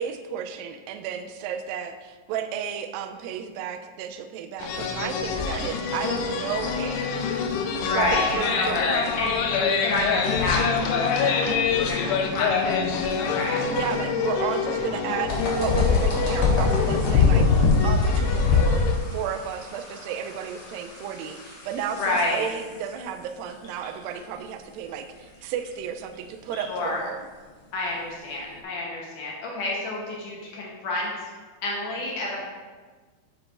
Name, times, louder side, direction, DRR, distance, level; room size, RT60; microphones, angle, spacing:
voice 1, 0.0-7.1 7.9-8.8 13.6-17.5 17.8-27.3, right 8 dB, 85° right, 7 dB, 2.0 m, -33 dB
sound 1, 4.6-19.0, left 5 dB, 90° left, 2.8 m, -24 dB
voice 2, 7.8-12.9 13.2-13.6 21.9-22.4 26.5-27.0 27.7-31.3 31.6-32.4, left 2 dB, 70° left, -3 dB, 2.0 m, -29 dB
sound 2, 15.3-28.6, left 1 dB, 55° left, 1.8 m, -38 dB
9.9 x 7.3 x 2.5 m, 1.4 s
omnidirectional pair, 4.7 m